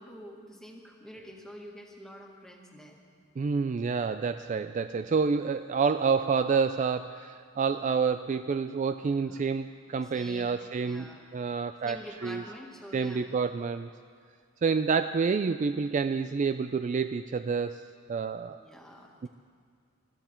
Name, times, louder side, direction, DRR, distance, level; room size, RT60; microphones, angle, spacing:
voice 1, 0.0-3.0 4.9-5.1 9.0-9.4 10.0-11.2 11.8-13.2 18.6-19.3, equal, 5° left, -1 dB, 1.8 m, -47 dB
voice 2, 3.4-12.4 12.9-13.9 14.6-17.8 18.1-18.6 19.2-19.3, right 5 dB, 35° right, 10 dB, 0.3 m, -28 dB
21.5 x 13.5 x 4.4 m, 2.2 s
head